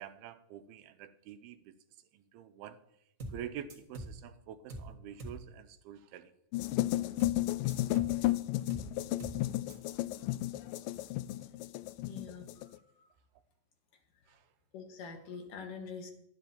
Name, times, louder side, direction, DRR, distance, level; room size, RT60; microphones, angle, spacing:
voice 1, 0.0-1.7 2.1-2.8 3.3-6.3 14.3-14.4, right 10 dB, 85° right, 10 dB, 2.6 m, -47 dB
sound 1, 3.2-3.4 3.7-4.2 4.7-4.9 5.2-5.4 7.2-7.4 7.7-8.2 8.7-8.9 9.2-9.4 9.7-9.8, right 1 dB, 45° right, 0.9 m, -43 dB
sound 2, 6.5-12.8, left 16 dB, 90° left, 1.9 m, -33 dB
voice 2, 12.1-13.1 14.7-16.1, left 5 dB, 65° left, 4 dB, 2.8 m, -45 dB
12.0 x 10.0 x 4.2 m, 0.80 s
omnidirectional pair, 4.4 m